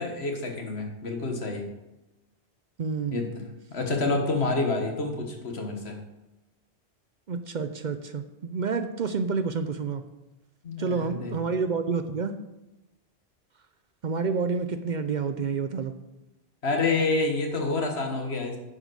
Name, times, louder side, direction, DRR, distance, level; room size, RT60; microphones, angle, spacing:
voice 1, 0.0-1.7 3.1-3.4 3.7-6.0 10.6-11.3 16.6-18.6, left 3 dB, 80° left, 3 dB, 1.8 m, -28 dB
voice 2, 2.8-3.2 7.3-10.0 10.8-12.4 14.0-15.9, right 5 dB, 55° right, 10 dB, 0.6 m, -29 dB
9.7 x 5.2 x 6.3 m, 0.97 s
omnidirectional pair, 1.1 m